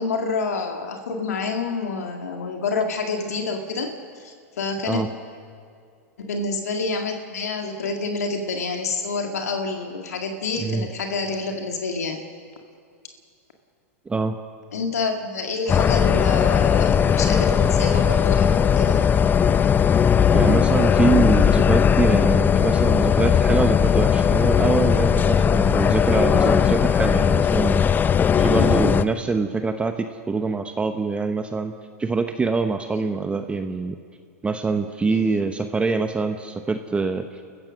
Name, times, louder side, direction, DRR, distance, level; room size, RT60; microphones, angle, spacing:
voice 1, 0.0-5.0 6.2-12.2 14.7-19.0 32.9-33.0 35.1-35.4, left 4 dB, 80° left, 3 dB, 2.0 m, -28 dB
voice 2, 10.6-10.9 14.1-14.4 20.3-28.0 28.4-31.7 32.0-34.0 34.4-37.2, right 4 dB, 15° right, 7 dB, 0.9 m, -24 dB
sound 1, 15.7-29.0, left 7 dB, 20° left, 0.6 m, -18 dB
29.5 x 15.0 x 6.3 m, 2.3 s
hypercardioid pair, 105°, 8 cm